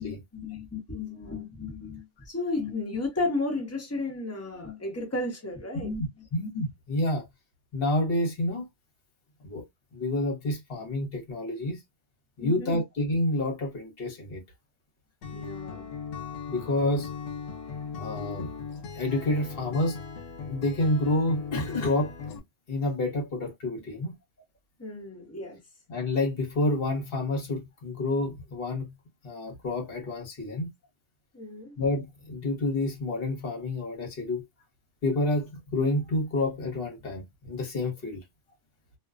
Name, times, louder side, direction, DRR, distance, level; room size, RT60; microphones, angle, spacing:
voice 1, 0.0-5.9 6.2-6.3 12.4-12.7 15.3-15.9 24.8-25.6 31.3-31.7, left 3 dB, 15° left, 0.8 m, -33 dB
voice 2, 5.7-7.3 7.7-8.6 9.4-9.6 9.9-11.8 12.4-14.4 16.5-17.1 18.0-18.5 18.9-20.0 20.5-22.1 22.7-24.1 25.9-28.9 29.2-30.7 31.8-34.4 35.0-38.2, left 2 dB, 55° left, 1.2 m, -29 dB
Acoustic guitar, 15.2-22.4, left 5 dB, 85° left, 0.9 m, -38 dB
2.5 x 2.2 x 2.4 m
omnidirectional pair, 1.2 m